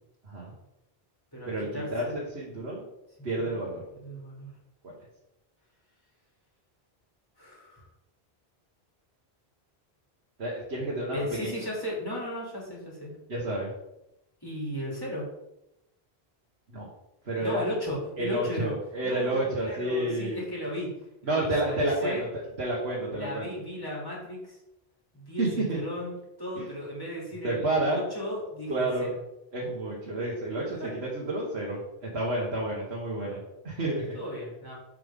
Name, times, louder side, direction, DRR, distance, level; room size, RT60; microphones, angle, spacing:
voice 1, 0.2-0.5 1.5-2.9 3.2-3.8 4.8-4.9 10.4-11.5 13.3-13.7 16.7-16.9 17.3-17.7 18.2-20.4 21.2-22.3 22.6-23.5 25.4-25.8 26.6-26.7 27.4-28.0 28.7-29.1 29.5-34.2, right 1 dB, 80° right, -4 dB, 1.8 m, -30 dB
voice 2, 1.3-2.1 3.4-3.6 4.0-4.5 7.4-7.8 11.1-13.2 14.4-15.3 17.4-18.7 19.0-20.9 21.2-22.2 23.1-24.6 25.1-29.1 30.8-30.9 34.1-34.7, equal, 20° left, -5 dB, 3.0 m, -35 dB
7.5 x 6.8 x 3.7 m, 0.89 s
omnidirectional pair, 1.1 m